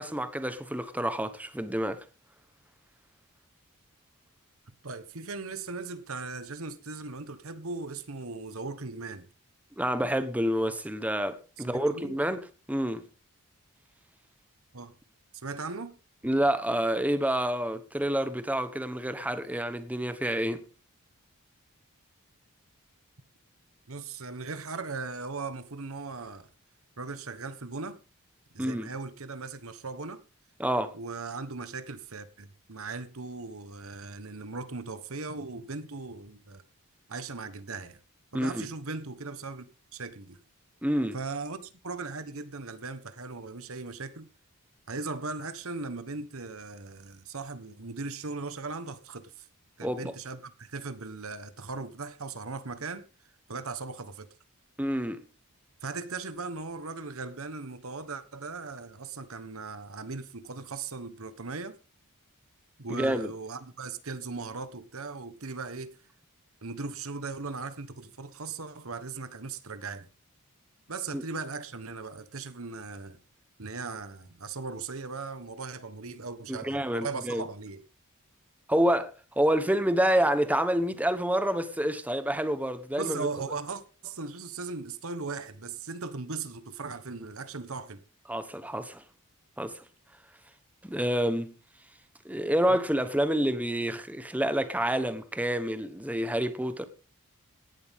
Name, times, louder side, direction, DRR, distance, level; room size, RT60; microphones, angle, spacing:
voice 1, 0.0-2.0 9.8-13.1 16.2-20.6 28.6-28.9 30.6-30.9 38.3-38.7 40.8-41.2 49.8-50.1 54.8-55.2 62.9-63.3 71.1-71.2 76.5-77.4 78.7-79.1 79.4-83.3 88.3-89.0 89.6-89.8 90.8-91.5 92.2-96.8, right 1 dB, 5° right, 1.1 m, -28 dB
voice 2, 4.8-9.3 11.7-12.2 14.7-14.9 15.3-15.9 23.9-26.5 27.0-28.0 28.5-30.2 30.9-36.6 37.1-38.0 38.3-39.7 39.9-40.4 41.1-44.3 44.9-49.5 49.8-53.1 53.5-54.3 55.8-61.8 62.8-66.0 66.6-70.1 70.9-73.2 73.6-77.8 83.0-88.0 92.7-92.8, right 4 dB, 65° right, 1.3 m, -38 dB
17.5 x 11.5 x 3.6 m
head